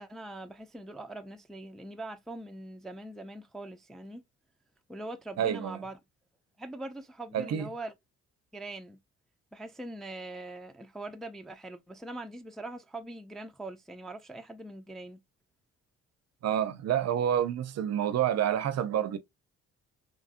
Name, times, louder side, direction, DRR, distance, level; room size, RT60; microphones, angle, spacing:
voice 1, 0.0-4.2 4.9-6.0 6.6-7.9 8.5-9.0 9.5-15.2, right 2 dB, ahead, 0.3 m, -42 dB
voice 2, 5.4-5.8 7.3-7.7 16.4-19.2, right 10 dB, 60° right, 0.5 m, -28 dB
3.1 x 2.5 x 2.4 m
cardioid pair, 90°, 30 cm